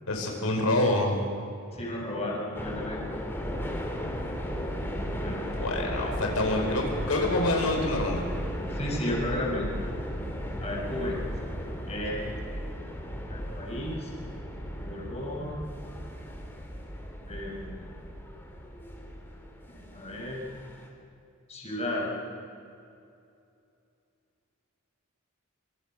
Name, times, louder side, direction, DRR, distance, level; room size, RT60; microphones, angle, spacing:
voice 1, 0.1-1.2 5.5-8.2, left 2 dB, 90° left, 1 dB, 4.9 m, -26 dB
voice 2, 1.7-3.1 5.2-5.4 8.7-9.8 10.6-11.2 11.9-12.3 13.3-14.1 14.8-15.6 17.3-17.9 19.7-20.4 21.5-22.1, left 1 dB, 30° left, -2 dB, 6.0 m, -33 dB
sound 1, 2.5-20.9, equal, 10° left, 3.6 m, -35 dB
26.5 x 25.5 x 6.3 m, 2.6 s
head